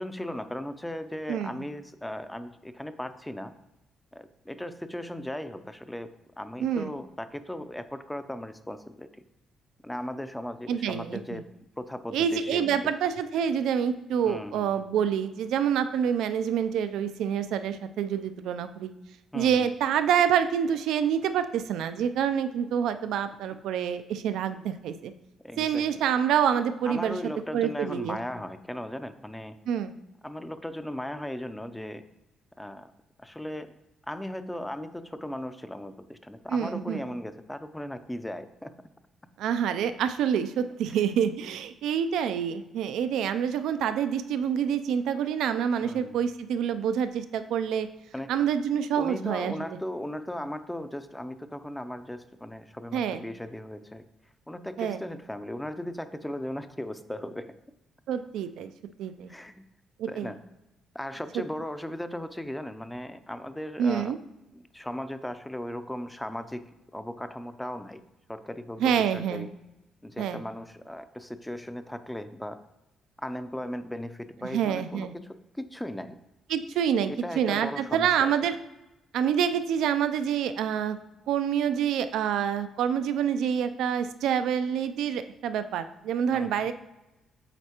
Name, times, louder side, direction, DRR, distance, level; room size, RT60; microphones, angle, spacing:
voice 1, 0.0-3.5 4.1-6.1 6.4-9.1 9.8-11.5 11.8-12.8 14.3-14.7 19.3-19.7 25.4-25.9 26.9-29.6 30.2-32.0 32.6-32.9 33.2-33.7 34.1-38.7 45.8-46.2 48.1-48.3 48.9-54.0 54.5-57.5 59.3-59.6 60.0-60.4 60.9-64.1 64.5-66.7 66.9-68.0 68.3-69.5 70.0-72.6 73.2-76.2 77.1-78.3 86.3-86.5, left 1 dB, 5° left, 11 dB, 0.4 m, -37 dB
voice 2, 1.3-1.6 6.6-6.9 10.7-11.4 12.1-18.9 19.3-25.1 25.6-27.2 27.5-28.2 29.7-29.9 36.5-37.1 39.4-47.9 48.3-49.7 52.9-53.2 54.8-55.0 58.1-58.7 59.0-59.3 60.0-60.3 63.8-64.2 68.8-69.5 70.2-70.4 74.4-75.1 76.5-78.5 79.1-81.0 81.3-86.7, right 8 dB, 85° right, 11 dB, 0.4 m, -27 dB
8.0 x 4.2 x 2.9 m, 0.97 s
cardioid pair, 90°, 0 cm